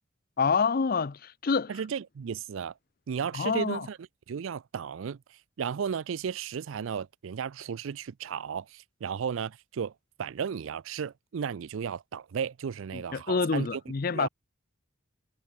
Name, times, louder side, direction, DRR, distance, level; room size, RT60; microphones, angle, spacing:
voice 1, 0.4-1.7 3.3-3.9 12.9-14.3, left 5 dB, 45° left, 0.5 m, -27 dB
voice 2, 1.7-2.7 3.1-4.0 4.3-5.2 5.6-9.9 10.2-13.8 14.1-14.3, right 7 dB, 70° right, 0.4 m, -34 dB
head